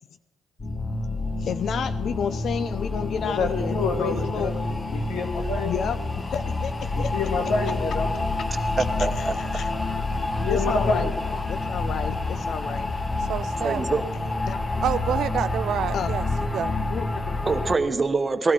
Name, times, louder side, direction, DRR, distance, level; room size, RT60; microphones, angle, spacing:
sound 1, 0.6-17.8, left 2 dB, 25° left, 1.0 m, -28 dB
voice 1, 1.4-4.6 5.6-6.0 6.2-7.2 8.4-8.5 8.8-8.9 9.2-9.3 9.5-9.7 10.5-11.1 11.5-12.9 14.5-14.6 15.9-16.1 16.9-17.4, left 7 dB, 65° left, 0.5 m, -31 dB
voice 2, 3.2-4.5 4.9-5.8 6.9-8.1 10.0-11.1, left 3 dB, 80° left, 2.1 m, -28 dB
voice 3, 8.8-9.3 13.6-14.0 17.5-18.5, right 4 dB, 30° right, 1.1 m, -24 dB
voice 4, 13.3-13.8 14.8-16.3 16.5-16.8, right 10 dB, 75° right, 0.5 m, -27 dB
18.5 x 12.5 x 4.5 m
cardioid pair, 90°, 0 cm